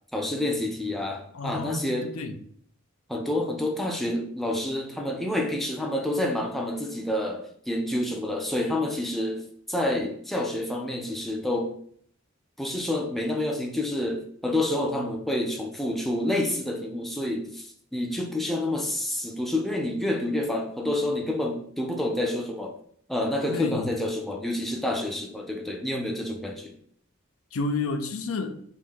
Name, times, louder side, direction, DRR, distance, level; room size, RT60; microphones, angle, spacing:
voice 1, 0.1-2.1 3.1-11.7 12.6-22.8 23.1-26.7, left 1 dB, ahead, 0.4 m, -28 dB
voice 2, 1.3-2.4 23.5-23.9 27.5-28.6, left 3 dB, 85° left, 0.5 m, -30 dB
3.5 x 2.7 x 4.4 m
head